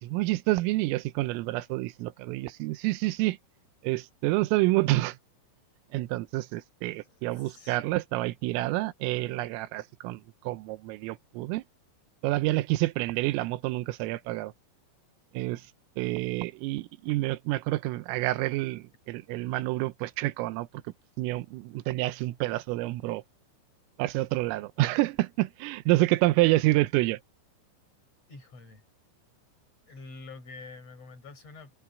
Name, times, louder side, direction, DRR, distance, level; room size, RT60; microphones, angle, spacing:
voice 1, 0.0-3.4 3.8-5.2 5.9-10.2 10.5-11.6 12.2-14.5 15.4-15.6 16.0-20.7 21.2-23.2 24.0-27.2, right 19 dB, 85° right, 3.5 m, -28 dB
voice 2, 6.9-7.8 28.3-28.8 29.9-31.7, left 3 dB, 30° left, 6.9 m, -47 dB
omnidirectional pair, 5.8 m